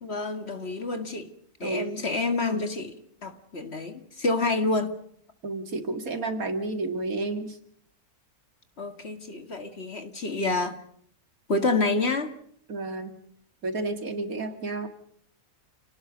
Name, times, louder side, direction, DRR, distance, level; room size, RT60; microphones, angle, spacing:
voice 1, 0.0-1.3 1.6-3.0 3.2-4.9 8.8-10.8 11.5-12.3, left 3 dB, 40° left, 8 dB, 2.2 m, -28 dB
voice 2, 1.6-2.0 5.4-7.5 12.7-13.1 13.6-14.9, right 3 dB, 60° right, 7 dB, 2.7 m, -31 dB
29.0 x 19.0 x 5.2 m, 0.63 s
omnidirectional pair, 1.7 m